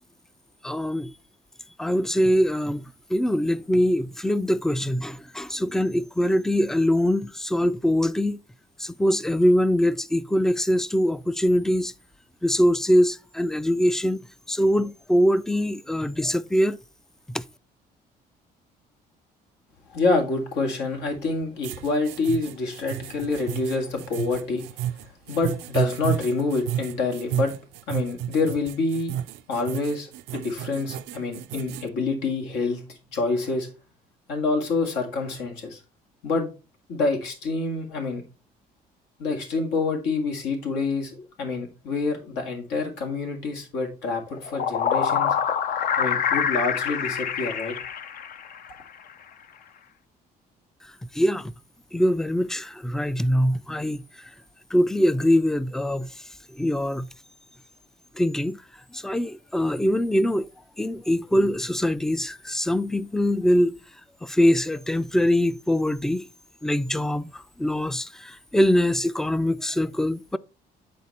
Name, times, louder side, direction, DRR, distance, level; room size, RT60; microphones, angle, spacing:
voice 1, 0.6-1.1 1.8-8.4 8.8-11.9 12.4-14.2 14.5-16.8 17.3-17.4 51.1-51.5 51.9-54.3 54.7-56.1 56.6-57.1 58.2-58.6 58.9-60.5 60.8-63.7 64.2-66.3 66.6-70.4, equal, 5° left, 0.3 m, -23 dB
voice 2, 19.9-24.7 25.0-27.6 27.9-29.2 29.5-33.7 34.3-35.8 36.2-36.5 36.9-38.2 39.2-45.4 46.0-47.8, left 3 dB, 85° left, 1.9 m, -27 dB
sound 1, 21.6-31.9, right 11 dB, 85° right, 0.5 m, -32 dB
sound 2, 44.3-48.7, left 8 dB, 55° left, 0.6 m, -26 dB
8.6 x 4.0 x 4.2 m
cardioid pair, 110°, 17 cm